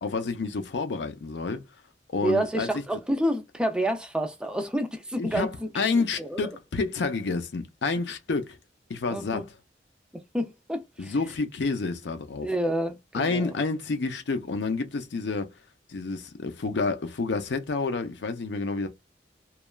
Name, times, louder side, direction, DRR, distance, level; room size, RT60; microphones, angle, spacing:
voice 1, 0.0-1.6 2.1-2.8 5.2-8.6 8.9-9.5 11.0-12.5 13.1-15.5 15.9-18.9, left 4 dB, 75° left, 0.5 m, -29 dB
voice 2, 2.2-6.5 9.1-9.5 10.3-11.1 12.4-13.5, right 1 dB, 5° right, 0.4 m, -29 dB
2.9 x 2.3 x 2.2 m
head